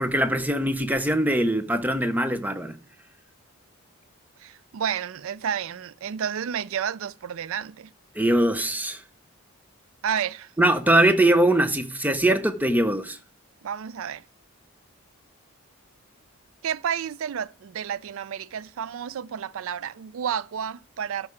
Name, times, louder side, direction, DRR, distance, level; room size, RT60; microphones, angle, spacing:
voice 1, 0.0-2.8 8.1-9.0 10.6-13.2, right 1 dB, 5° right, 0.6 m, -22 dB
voice 2, 4.4-7.9 10.0-10.5 13.6-14.2 16.6-21.3, right 8 dB, 65° right, 0.3 m, -31 dB
12.5 x 4.8 x 4.9 m
head